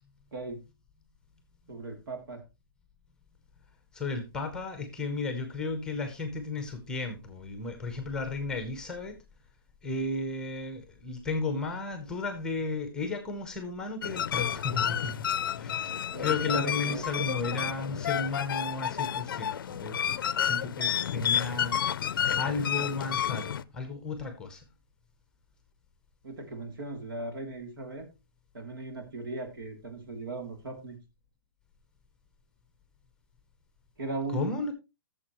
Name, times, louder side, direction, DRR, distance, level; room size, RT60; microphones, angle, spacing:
voice 1, 1.7-2.4 16.1-17.3 26.2-28.1 28.5-31.0 34.0-34.5, right 2 dB, 70° right, 5 dB, 2.9 m, -38 dB
voice 2, 3.9-9.2 9.8-15.1 15.6-20.0 20.4-22.0 22.3-24.6 34.3-34.7, left 3 dB, 5° left, 8 dB, 0.9 m, -34 dB
sound 1, 14.0-23.6, left 9 dB, 65° left, 0.5 m, -30 dB
13.5 x 7.0 x 3.0 m, 0.26 s
hypercardioid pair, 165°, 12 cm